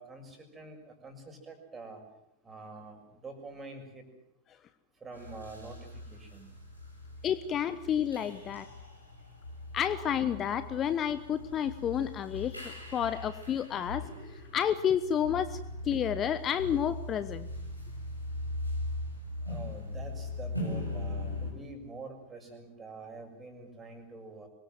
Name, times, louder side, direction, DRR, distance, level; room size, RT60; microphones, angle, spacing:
voice 1, 0.0-2.0 2.4-4.0 5.0-6.5 19.4-24.5, right 3 dB, 15° right, 5 dB, 6.5 m, -46 dB
sound 1, 5.1-21.5, left 2 dB, 90° left, 6.8 m, -40 dB
voice 2, 7.2-8.7 9.7-15.6 15.8-17.5, left 9 dB, 30° left, 13 dB, 1.0 m, -30 dB
25.0 x 22.5 x 7.8 m, 0.80 s
figure-of-eight pair, 90°, 0 cm